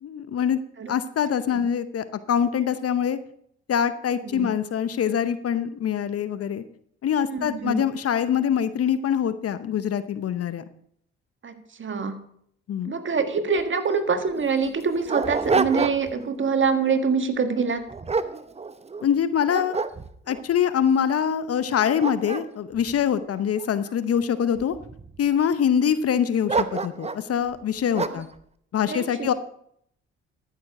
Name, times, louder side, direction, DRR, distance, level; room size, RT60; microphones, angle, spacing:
voice 1, 0.0-0.6 0.9-3.2 3.7-6.6 7.0-10.6 12.7-12.9 19.0-19.8 20.3-24.8 25.2-28.3 28.7-29.3, left 8 dB, 50° left, 13 dB, 0.8 m, -24 dB
voice 2, 4.2-4.5 7.3-7.8 11.4-11.5 11.8-12.2 12.8-17.9 28.1-28.2 28.9-29.3, right 5 dB, 40° right, 8 dB, 1.5 m, -25 dB
Dog, 13.6-13.7 13.9-14.0 14.6-16.2 16.7-17.0 17.6-19.1 19.5-20.4 21.0-21.1 21.6-23.9 24.6-25.2 26.5-27.3 27.9-28.3, right 4 dB, 20° right, 0.7 m, -28 dB
13.5 x 6.7 x 5.0 m, 0.68 s
hypercardioid pair, 50°, 32 cm